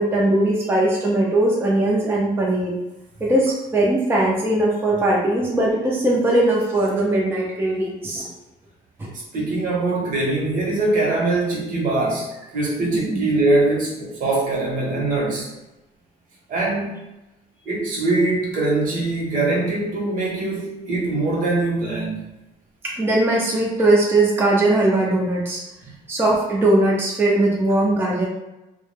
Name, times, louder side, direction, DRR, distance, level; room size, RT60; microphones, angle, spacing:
voice 1, 0.0-2.8 3.2-8.3 9.0-9.1 13.1-13.2 22.8-25.6 26.1-28.3, right 1 dB, 15° right, -3 dB, 0.5 m, -20 dB
voice 2, 9.3-15.5 16.5-16.9 17.7-22.2 25.8-25.9, right 2 dB, 55° right, -2 dB, 0.9 m, -22 dB
2.2 x 2.0 x 3.1 m, 0.99 s
cardioid pair, 110°, 17 cm